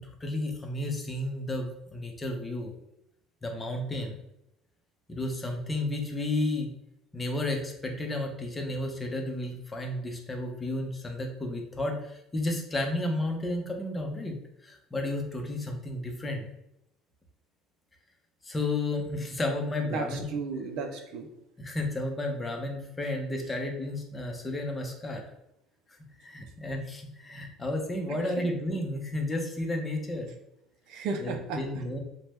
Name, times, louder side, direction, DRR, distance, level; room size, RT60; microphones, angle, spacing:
voice 1, 0.2-2.7 3.4-4.2 5.1-6.7 7.1-14.4 14.6-16.5 18.4-20.2 21.6-25.2 26.2-30.3 31.2-32.0, left 1 dB, 20° left, 3 dB, 0.7 m, -32 dB
voice 2, 19.9-21.3 28.1-28.5 30.9-31.6, right 4 dB, 70° right, 5 dB, 0.4 m, -34 dB
2.9 x 2.1 x 3.3 m, 0.82 s
supercardioid pair, 80°, 0 cm